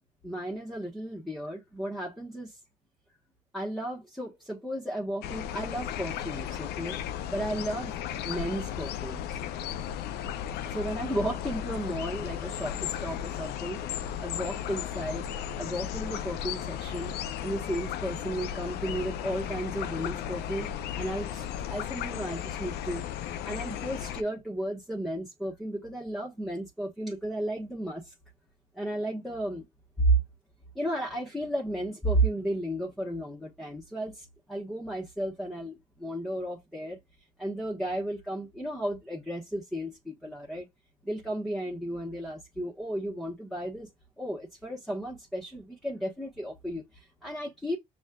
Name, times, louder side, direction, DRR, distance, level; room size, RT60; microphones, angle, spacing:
voice 1, 0.2-2.6 3.5-7.0 7.3-7.9 8.2-9.4 10.7-13.8 14.2-15.3 15.6-17.1 17.4-23.0 23.4-28.1 28.7-29.7 30.0-30.2 30.7-37.0 37.4-40.7 41.0-43.9 44.2-47.8, right 1 dB, ahead, 1.0 m, -33 dB
sound 1, 5.2-24.2, left 10 dB, 75° left, 0.4 m, -35 dB
6.1 x 2.4 x 2.2 m
cardioid pair, 110°, 17 cm